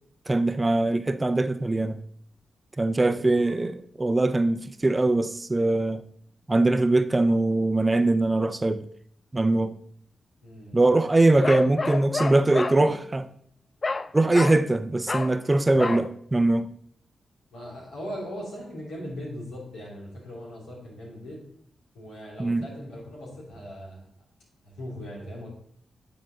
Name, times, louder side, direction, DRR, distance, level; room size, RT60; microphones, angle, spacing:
voice 1, 0.3-2.0 2.8-6.0 6.5-8.8 9.3-9.8 10.7-13.3 14.1-16.7 22.4-22.7, right 2 dB, 25° right, 0.5 m, -22 dB
voice 2, 3.0-3.4 10.4-10.9 11.3-11.7 15.7-16.0 17.5-21.4 21.9-24.1 24.6-25.5, equal, 85° left, 2.6 m, -39 dB
Bark, 11.4-12.8 13.8-14.1 14.3-14.6 15.1-15.4 15.8-16.1, left 3 dB, 45° left, 0.3 m, -29 dB
9.7 x 3.9 x 3.7 m
supercardioid pair, 40°, 0 cm